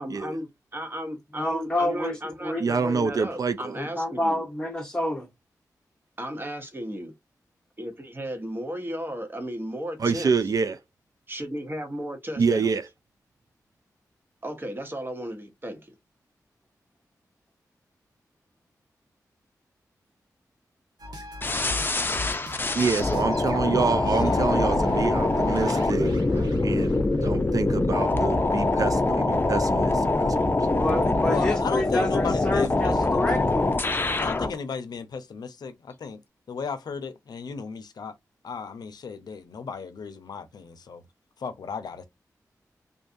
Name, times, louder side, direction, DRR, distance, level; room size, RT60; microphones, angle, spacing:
voice 1, 0.0-0.5 0.7-4.5 6.2-7.1 7.8-10.3 11.3-12.7 14.4-15.9, equal, 30° right, 1.0 m, -34 dB
voice 2, 1.4-2.2 2.4-2.6 3.8-5.3 30.7-33.8, left 1 dB, 10° left, 0.9 m, -28 dB
voice 3, 2.6-3.8 10.0-10.8 12.4-12.8 22.7-26.1 26.6-30.8, right 5 dB, 60° right, 0.4 m, -27 dB
sound 1, 21.0-27.3, equal, 75° right, 1.0 m, -36 dB
sound 2, 21.4-34.5, left 2 dB, 30° left, 0.5 m, -24 dB
voice 4, 24.1-24.5 31.2-33.3 34.2-36.2 36.5-38.1 38.4-41.0 41.4-42.0, left 5 dB, 75° left, 0.6 m, -35 dB
2.6 x 2.3 x 2.6 m
cardioid pair, 45°, 7 cm